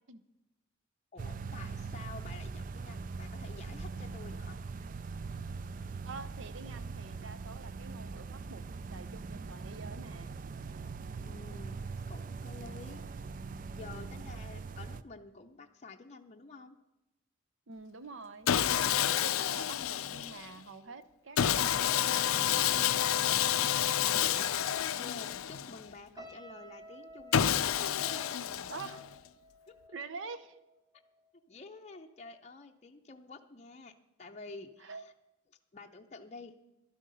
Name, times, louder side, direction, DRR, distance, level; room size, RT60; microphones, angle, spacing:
voice 1, 1.1-4.6 11.2-13.0 13.7-16.8 24.0-27.5 28.3-28.7 29.7-29.8 31.5-35.1 35.7-36.5, left 3 dB, 30° left, 3 dB, 0.6 m, -50 dB
sound 1, 1.2-15.0, right 4 dB, 40° right, 0.4 m, -41 dB
voice 2, 6.0-8.6 8.9-10.4 17.7-23.6 28.7-29.0 29.9-30.6 34.8-35.0, right 4 dB, 65° right, 14 dB, 0.8 m, -47 dB
Sawing, 18.5-20.5 21.4-25.9 27.3-29.1, left 10 dB, 90° left, 0.5 m, -29 dB
sound 2, 26.1-31.4 31.8-32.1, right 1 dB, 20° right, 1.3 m, -54 dB
12.0 x 10.5 x 5.5 m, 0.97 s
head